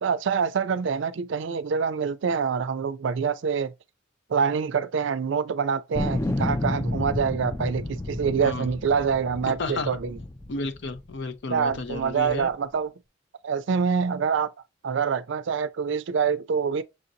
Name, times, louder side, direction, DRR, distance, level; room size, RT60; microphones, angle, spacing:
voice 1, 0.0-3.7 4.3-10.2 11.5-12.9 13.4-14.5 14.8-16.8, right 6 dB, 65° right, 0.4 m, -26 dB
sound 1, 6.0-11.2 11.7-12.5, left 2 dB, 15° left, 0.3 m, -31 dB
voice 2, 9.5-10.0 10.5-12.5, left 3 dB, 65° left, 0.6 m, -32 dB
6.3 x 2.6 x 2.7 m
head